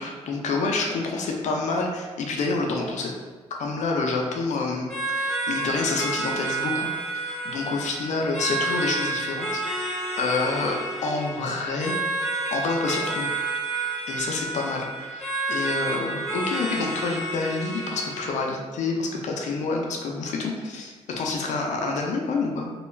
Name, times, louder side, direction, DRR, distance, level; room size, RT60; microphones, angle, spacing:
voice 1, 0.0-3.1 3.6-6.9 7.1-9.9 10.2-11.9 12.5-13.3 14.1-15.2 15.5-22.7, left 3 dB, 65° left, 1 dB, 0.4 m, -28 dB
sound 1, 4.9-18.5, right 2 dB, ahead, 0.9 m, -30 dB
2.2 x 2.2 x 3.1 m, 1.4 s
supercardioid pair, 55°, 13 cm